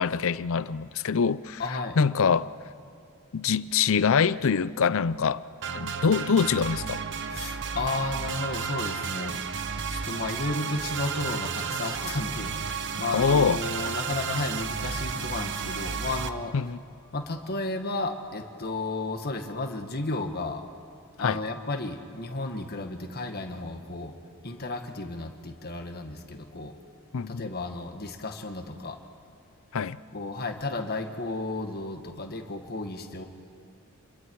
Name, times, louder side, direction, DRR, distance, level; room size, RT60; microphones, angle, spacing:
voice 1, 0.0-1.6 2.0-2.5 3.3-5.4 5.7-7.0 13.1-13.6 16.5-16.8 21.2-21.4 27.1-27.5 29.7-30.0, left 6 dB, 65° left, 0.5 m, -24 dB
voice 2, 1.6-2.0 7.3-9.4 9.9-16.5 17.1-20.7 21.2-24.1 24.4-26.8 27.3-29.0 30.1-33.3, left 2 dB, 45° left, 1.7 m, -33 dB
sound 1, 5.6-16.3, right 6 dB, 55° right, 0.9 m, -32 dB
29.0 x 22.5 x 4.7 m
head